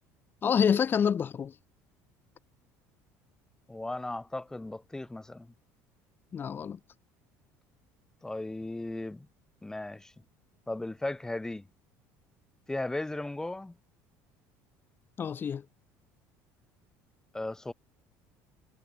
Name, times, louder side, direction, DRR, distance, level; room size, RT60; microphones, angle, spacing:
voice 1, 0.4-1.5 6.3-6.8 15.2-15.6, left 7 dB, 35° left, 2.7 m, -27 dB
voice 2, 3.7-5.5 8.2-9.3 9.6-10.1 10.7-11.7 12.7-13.7 17.3-17.7, left 2 dB, 10° left, 4.0 m, -36 dB
cardioid pair, 120°, 6 cm